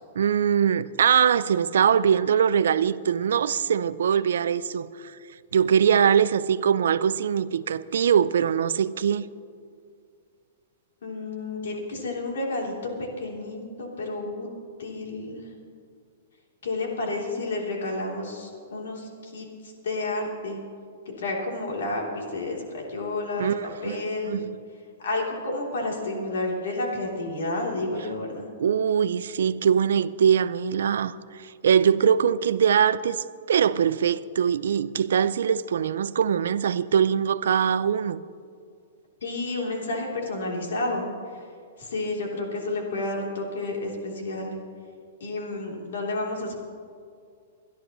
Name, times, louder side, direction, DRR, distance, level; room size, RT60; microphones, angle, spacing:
voice 1, 0.2-5.2 5.5-9.3 23.4-24.5 28.6-38.2, right 8 dB, 85° right, 0.5 m, -22 dB
voice 2, 11.0-12.7 13.0-14.5 14.8-15.4 16.6-20.6 21.2-24.4 25.0-28.5 39.2-41.0 41.8-44.6 45.2-46.5, left 2 dB, 90° left, 3.3 m, -31 dB
24.0 x 11.0 x 3.1 m
hypercardioid pair, 165°, 0 cm